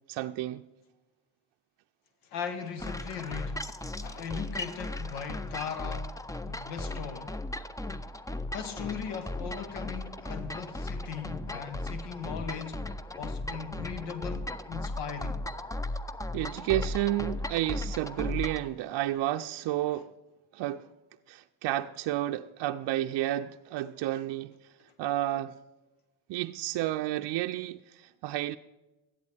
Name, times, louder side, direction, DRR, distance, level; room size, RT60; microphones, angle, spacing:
voice 1, 0.1-0.6 16.3-20.1 20.5-20.9 21.3-24.5 25.0-25.5 26.3-28.6, right 14 dB, 60° right, 0.5 m, -31 dB
voice 2, 2.2-3.6 4.0-6.1 6.4-7.3 8.5-12.9 13.2-15.4 18.2-18.3 19.9-20.0, left 7 dB, 90° left, 1.1 m, -38 dB
sound 1, 2.8-18.7, left 1 dB, 10° left, 0.4 m, -36 dB
13.5 x 11.0 x 3.4 m
supercardioid pair, 70°, 48 cm